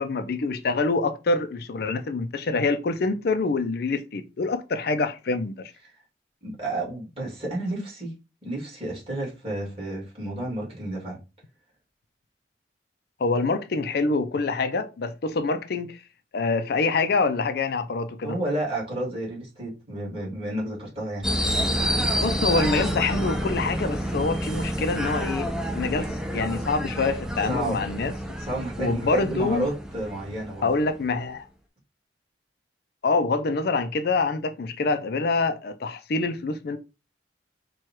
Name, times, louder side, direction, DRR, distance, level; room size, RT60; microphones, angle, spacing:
voice 1, 0.0-5.7 13.2-16.0 16.3-18.4 22.2-28.1 28.8-29.7 30.6-31.5 33.0-36.8, left 3 dB, 60° left, 0.4 m, -26 dB
voice 2, 6.4-8.1 8.4-11.2 18.2-21.3 27.4-27.8 28.4-30.7, right 1 dB, 30° right, 2.3 m, -31 dB
sound 1, 21.2-31.1, equal, 5° right, 0.5 m, -29 dB
4.6 x 2.3 x 4.4 m
head